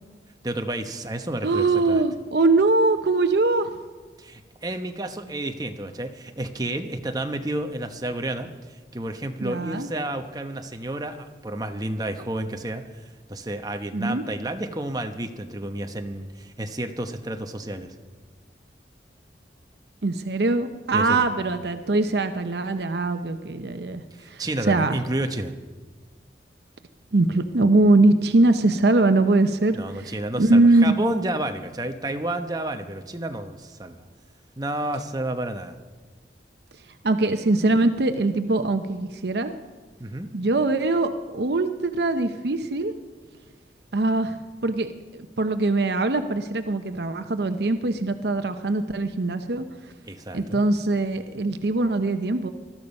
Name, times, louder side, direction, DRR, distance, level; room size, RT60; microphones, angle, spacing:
voice 1, 0.4-2.0 4.2-12.8 13.3-17.9 20.9-21.3 24.1-25.5 29.7-34.0 34.6-35.8 40.0-40.3 50.0-50.6, right 1 dB, 20° right, 6 dB, 1.0 m, -31 dB
voice 2, 1.4-3.7 9.4-9.9 13.9-14.2 20.0-24.0 24.3-25.0 27.1-31.0 37.0-39.5 40.3-42.9 43.9-49.6 50.3-52.5, right 2 dB, 70° right, 8 dB, 0.7 m, -22 dB
20.0 x 13.5 x 5.4 m, 1.3 s
head